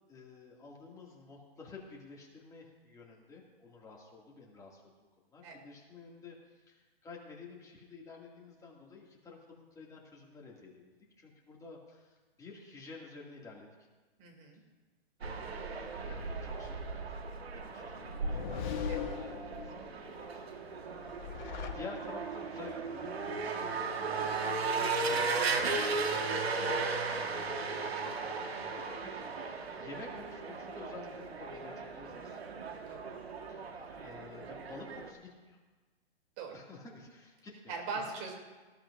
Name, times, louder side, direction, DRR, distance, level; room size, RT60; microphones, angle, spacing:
voice 1, 0.1-4.8 5.3-6.4 6.7-10.9 11.2-12.1 12.4-13.7 15.2-17.2 17.6-18.4 18.7-19.0 19.3-20.0 20.3-20.7 21.7-27.0 27.6-32.4 33.5-33.6 34.0-35.6 36.5-38.1, left 4 dB, 10° left, -2 dB, 2.2 m, -51 dB
voice 2, 14.2-14.6 18.9-19.2 27.4-28.4 32.9-33.2 36.4-36.6 37.7-38.4, right 4 dB, 35° right, 1 dB, 2.8 m, -42 dB
sound 1, 15.2-35.1, right 4 dB, 85° right, 1.5 m, -36 dB
sound 2, 17.9-19.9 20.9-22.4, left 8 dB, 50° left, 1.4 m, -40 dB
19.0 x 12.5 x 2.6 m, 1.3 s
hypercardioid pair, 135°, 31 cm